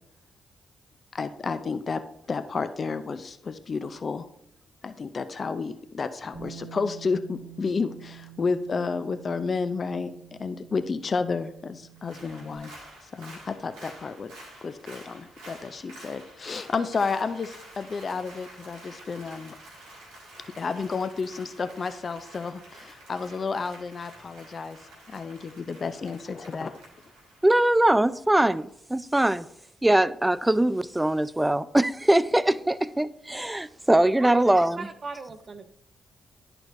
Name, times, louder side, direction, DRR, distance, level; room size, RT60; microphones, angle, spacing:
voice 1, 1.1-2.0 2.3-4.3 4.8-12.7 13.0-14.3 14.6-19.6 20.6-24.8 25.1-26.7, left 4 dB, 50° left, 0.4 m, -31 dB
Bass guitar, 6.3-12.6, right 10 dB, 85° left, 1.7 m, -47 dB
Applause, 12.0-28.6 28.9-29.0, right 1 dB, 85° right, 1.6 m, -49 dB
voice 2, 27.4-29.5 29.8-34.9, right 1 dB, 15° right, 0.3 m, -22 dB
voice 3, 34.2-35.7, right 4 dB, 50° right, 0.6 m, -38 dB
10.5 x 4.5 x 2.6 m
hypercardioid pair, 45°, 0 cm